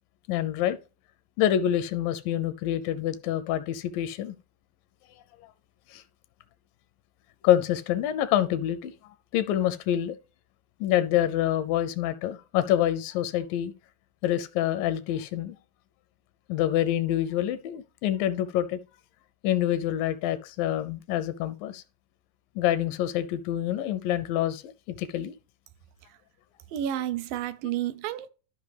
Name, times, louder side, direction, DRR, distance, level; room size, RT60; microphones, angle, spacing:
voice 1, 0.3-0.8 1.4-4.4 5.9-6.0 7.4-8.9 9.3-10.2 10.8-13.7 14.2-15.6 16.5-18.8 19.4-21.8 22.6-25.3, left 11 dB, 85° left, 2.2 m, -26 dB
voice 2, 26.7-28.3, right 11 dB, 85° right, 2.3 m, -30 dB
13.0 x 5.3 x 3.3 m
omnidirectional pair, 4.0 m